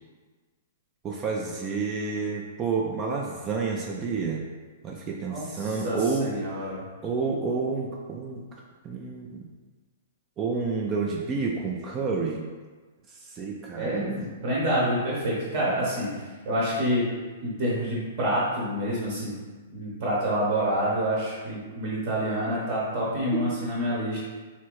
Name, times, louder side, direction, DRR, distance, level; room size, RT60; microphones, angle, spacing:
voice 1, 1.0-4.5 4.8-6.3 7.0-8.4 8.8-9.5 10.4-12.5 13.1-14.2 15.7-15.9 23.3-23.4, right 4 dB, 25° right, -1 dB, 0.3 m, -29 dB
voice 2, 5.3-6.8 13.7-16.1 16.4-17.1 17.4-19.3 19.7-24.2, equal, 50° right, -6 dB, 0.9 m, -27 dB
3.1 x 2.6 x 3.0 m, 1.4 s
figure-of-eight pair, 110°, 0 cm